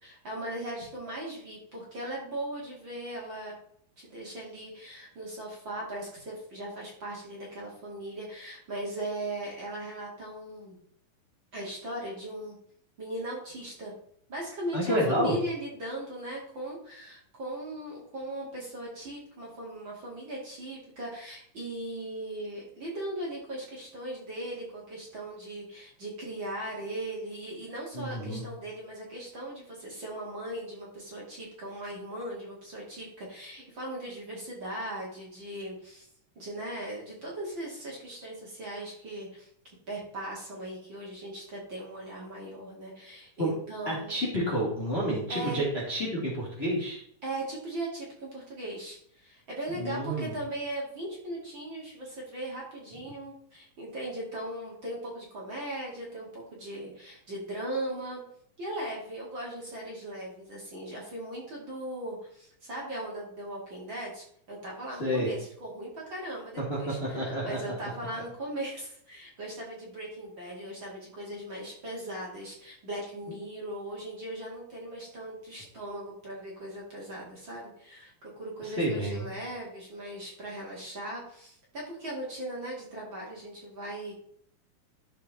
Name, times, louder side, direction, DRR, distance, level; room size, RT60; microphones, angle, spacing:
voice 1, 0.0-3.5 4.0-10.8 11.5-12.6 13.0-13.9 14.3-36.1 36.4-44.2 45.3-45.6 47.2-58.2 58.6-84.1, right 1 dB, 40° right, -4 dB, 2.5 m, -38 dB
voice 2, 14.7-15.3 27.9-28.4 43.4-43.5 43.9-47.0 49.7-50.3 65.0-65.3 66.6-67.9 73.3-73.4 78.6-79.3, equal, 20° left, -4 dB, 1.7 m, -30 dB
12.5 x 4.7 x 4.1 m, 0.67 s
omnidirectional pair, 4.0 m